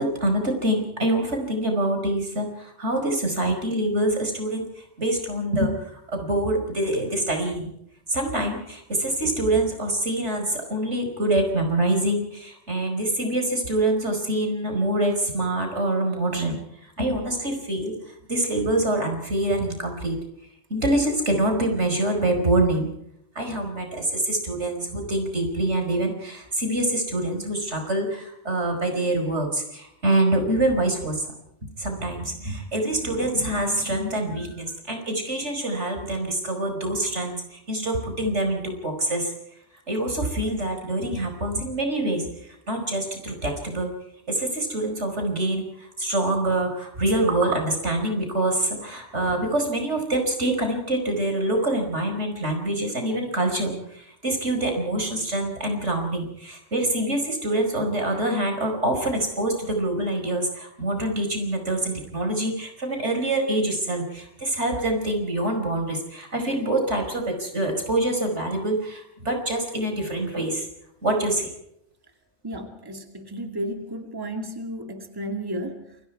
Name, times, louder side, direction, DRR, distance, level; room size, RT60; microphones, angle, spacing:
voice 1, 0.0-4.7 5.0-7.7 8.1-17.9 18.3-20.2 20.7-22.9 23.4-31.3 31.8-39.3 39.9-42.3 42.7-43.9 44.3-70.7 71.0-71.5, right 1 dB, 85° right, 4 dB, 5.5 m, -25 dB
voice 2, 72.4-76.0, right 1 dB, 20° right, 4 dB, 2.4 m, -33 dB
28.5 x 22.0 x 4.7 m, 0.76 s
omnidirectional pair, 1.2 m